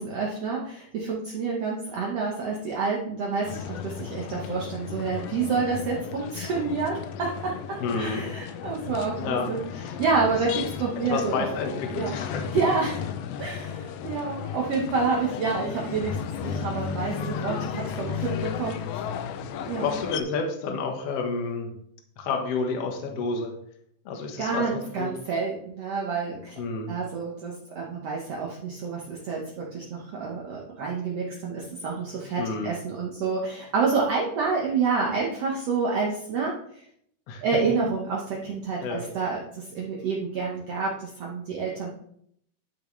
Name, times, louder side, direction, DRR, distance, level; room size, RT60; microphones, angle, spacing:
voice 1, 0.0-9.6 10.0-11.5 11.9-12.2 12.5-13.0 13.4-19.1 19.7-20.0 24.4-26.6 26.9-36.8 37.4-41.9, right 4 dB, 60° right, -2 dB, 2.0 m, -28 dB
sound 1, 3.4-20.2, left 8 dB, 80° left, 1.5 m, -34 dB
voice 2, 7.8-8.2 9.2-9.5 9.7-9.9 11.1-12.5 19.8-21.7 22.2-23.5 24.1-25.1 26.6-26.9 32.4-32.7 37.3-37.4 38.8-39.1, left 4 dB, 55° left, 3 dB, 2.0 m, -30 dB
12.0 x 6.5 x 3.3 m, 0.70 s
omnidirectional pair, 3.7 m